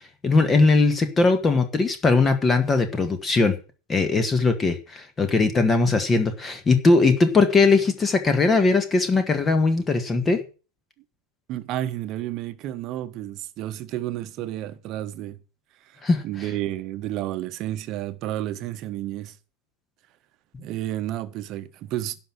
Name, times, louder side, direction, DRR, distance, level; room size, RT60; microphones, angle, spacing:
voice 1, 0.2-3.5 3.9-10.4 16.0-16.2, left 3 dB, 20° left, 1.6 m, -20 dB
voice 2, 11.5-15.4 15.9-19.4 20.6-22.2, right 13 dB, 35° right, 1.2 m, -31 dB
11.5 x 5.9 x 9.1 m
figure-of-eight pair, 90°, 0 cm